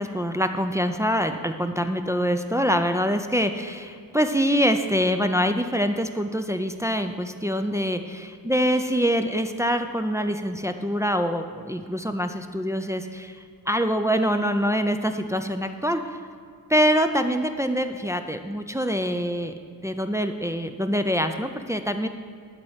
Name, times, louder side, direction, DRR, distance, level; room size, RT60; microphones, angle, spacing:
voice 1, 0.0-13.4 13.7-16.2 16.7-19.5 19.8-22.1, equal, 10° right, 7 dB, 0.3 m, -25 dB
11.5 x 4.3 x 8.0 m, 2.3 s
wide cardioid pair, 175°, 39 cm